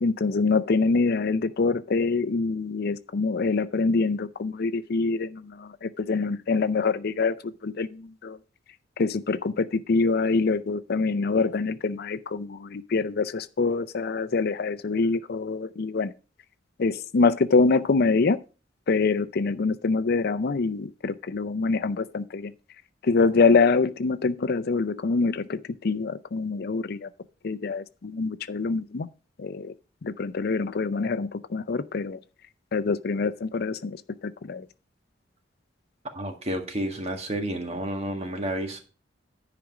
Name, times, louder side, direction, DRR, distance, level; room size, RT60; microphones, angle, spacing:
voice 1, 0.0-8.4 9.0-16.1 16.8-18.4 18.9-22.5 23.0-27.1 27.4-29.1 29.4-29.7 30.0-32.2 32.7-34.7, left 4 dB, 60° left, 0.5 m, -25 dB
voice 2, 36.1-38.8, right 1 dB, 35° right, 1.7 m, -30 dB
10.5 x 5.0 x 5.9 m
head